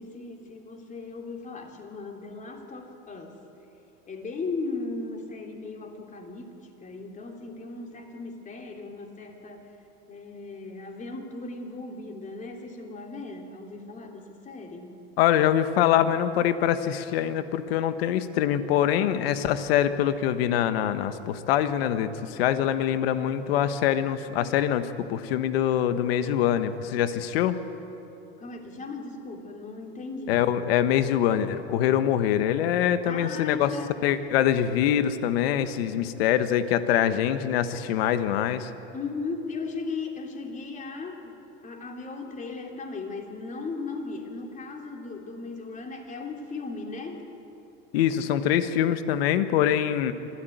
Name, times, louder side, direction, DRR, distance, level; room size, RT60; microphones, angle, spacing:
voice 1, 0.0-3.4 4.1-9.6 10.1-14.9 28.4-30.4 32.8-33.9 38.9-47.2, left 3 dB, 25° left, 2 dB, 3.3 m, -37 dB
voice 2, 15.2-27.6 30.3-33.7 34.0-38.7 47.9-50.1, left 10 dB, 80° left, 11 dB, 1.4 m, -24 dB
25.5 x 14.5 x 9.3 m, 3.0 s
supercardioid pair, 120°, 29 cm